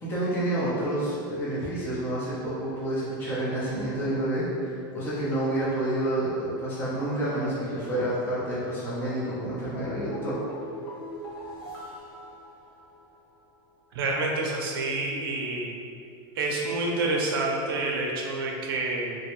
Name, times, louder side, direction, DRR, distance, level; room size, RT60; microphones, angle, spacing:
voice 1, 0.0-10.4, right 1 dB, 20° left, -8 dB, 0.7 m, -29 dB
sound 1, 9.7-13.2 13.5-13.6, left 1 dB, 85° left, 0.8 m, -40 dB
voice 2, 13.9-15.7 16.4-19.2, right 2 dB, 75° right, -1 dB, 0.5 m, -28 dB
3.0 x 2.2 x 3.0 m, 2.4 s
supercardioid pair, 155°, 12 cm